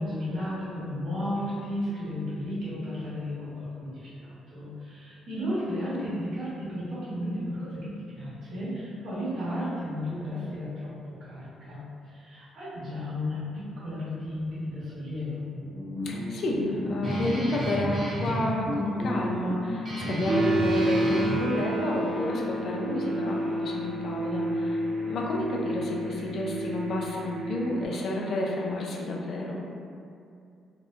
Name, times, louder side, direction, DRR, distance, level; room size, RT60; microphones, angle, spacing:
voice 1, 0.0-15.5, left 1 dB, 65° right, -10 dB, 1.1 m, -34 dB
Guitar, 15.6-21.4, equal, 45° right, 0.7 m, -32 dB
voice 2, 16.0-24.8 25.1-29.6, left 1 dB, 60° left, -2 dB, 0.4 m, -30 dB
sound 1, 20.2-27.8, right 1 dB, 90° right, 0.6 m, -30 dB
2.6 x 2.1 x 2.2 m, 2.4 s
cardioid pair, 90°, 0 cm